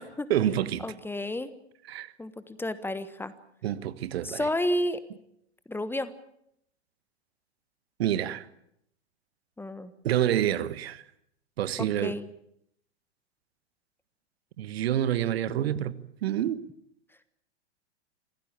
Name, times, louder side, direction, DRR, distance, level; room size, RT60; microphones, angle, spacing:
voice 1, 0.3-0.8 1.9-2.1 3.6-4.5 8.0-8.5 10.0-11.0 11.6-12.2 14.6-15.9 16.2-16.6, right 11 dB, 60° right, 1.3 m, -27 dB
voice 2, 0.8-1.5 2.2-3.3 4.2-5.0 5.7-6.1 9.6-9.9 11.8-12.2 15.5-15.6, left 1 dB, 5° left, 1.3 m, -31 dB
25.5 x 16.5 x 8.8 m
figure-of-eight pair, 100°, 34 cm